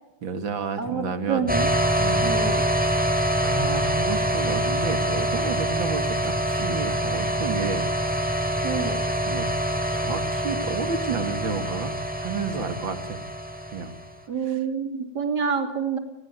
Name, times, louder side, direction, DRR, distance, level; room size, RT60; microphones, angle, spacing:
voice 1, 0.2-1.5 2.0-2.3 3.4-7.9 8.3-8.9 9.2-9.5 9.9-13.2 13.7-13.9 14.5-14.6, right 5 dB, 80° right, 9 dB, 2.6 m, -31 dB
voice 2, 0.8-1.7 2.2-2.6 8.6-9.0 14.3-16.0, right 6 dB, 55° right, 6 dB, 3.5 m, -27 dB
sound 1, 1.5-14.1, right 1 dB, 5° right, 3.4 m, -25 dB
29.5 x 19.5 x 9.4 m, 0.99 s
omnidirectional pair, 2.1 m